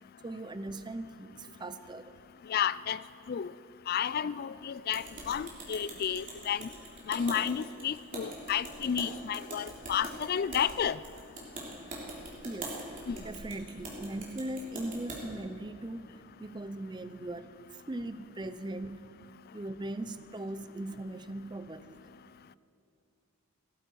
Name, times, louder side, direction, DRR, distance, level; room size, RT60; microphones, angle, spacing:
voice 1, 0.2-2.1 12.4-12.8 13.2-16.1 16.4-19.1 19.5-22.0, right 1 dB, 20° right, 11 dB, 0.5 m, -39 dB
voice 2, 2.5-3.0 3.3-3.5 3.9-6.7 7.1-11.0 13.1-13.2, left 8 dB, 45° left, 18 dB, 0.3 m, -31 dB
sound 1, 4.9-15.2, right 2 dB, 35° right, 3.4 m, -43 dB
17.5 x 14.5 x 4.6 m, 2.5 s
head